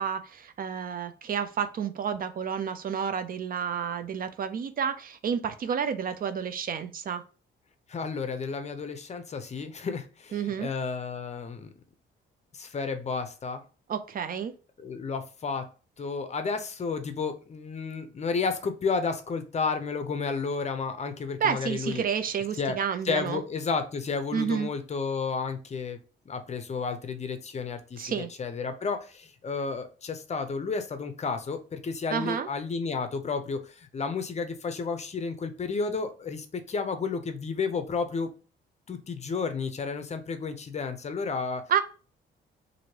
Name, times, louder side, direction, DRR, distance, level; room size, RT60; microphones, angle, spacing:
voice 1, 0.0-7.2 10.3-10.7 13.9-14.5 21.4-23.4 24.3-24.7 28.0-28.3 32.1-32.5 41.7-41.8, right 7 dB, 45° right, 10 dB, 0.4 m, -30 dB
voice 2, 7.9-11.7 12.5-13.6 14.8-15.7 16.0-22.0 22.6-22.8 23.0-26.0 26.3-38.3 38.9-41.6, left 4 dB, 35° left, 8 dB, 0.5 m, -32 dB
3.0 x 2.6 x 2.8 m, 0.36 s
cardioid pair, 90°, 20 cm